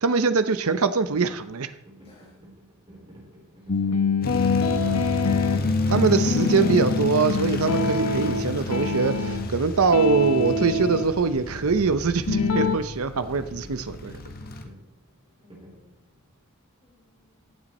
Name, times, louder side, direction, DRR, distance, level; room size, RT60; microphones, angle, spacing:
voice 1, 0.0-1.7 5.9-14.1, right 4 dB, 75° right, 11 dB, 0.7 m, -23 dB
sound 1, 0.9-16.4, equal, 25° right, 3.5 m, -50 dB
voice 2, 2.0-2.4 3.6-3.9 15.4-15.9 16.8-17.6, left 3 dB, 30° left, -3 dB, 4.7 m, -58 dB
sound 2, 3.7-9.6 9.9-11.1 12.3-12.8, left 3 dB, 80° left, 0.9 m, -24 dB
sound 3, 4.2-14.6, left 1 dB, 45° left, 1.5 m, -32 dB
15.5 x 8.9 x 4.2 m, 0.80 s
head